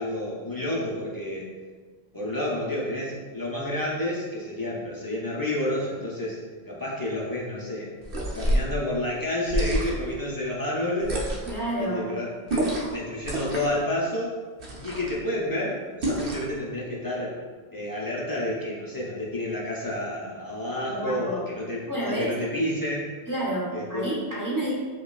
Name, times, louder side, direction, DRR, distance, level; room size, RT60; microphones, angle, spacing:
voice 1, 0.0-1.5 2.1-6.4 6.7-7.9 8.3-11.2 11.8-14.4 14.8-17.4 17.7-23.2 23.7-24.1, left 1 dB, 35° left, -5 dB, 0.3 m, -30 dB
sound 1, 8.0-8.7 9.5-10.1 11.0-11.6 12.5-13.0 13.2-13.8 14.6-15.2 16.0-16.5, right 1 dB, 65° right, 0.8 m, -28 dB
voice 2, 11.4-12.2 20.9-21.4 21.9-22.3 23.3-24.7, right 1 dB, 20° right, -7 dB, 0.9 m, -29 dB
5.0 x 2.2 x 2.3 m, 1.5 s
omnidirectional pair, 1.1 m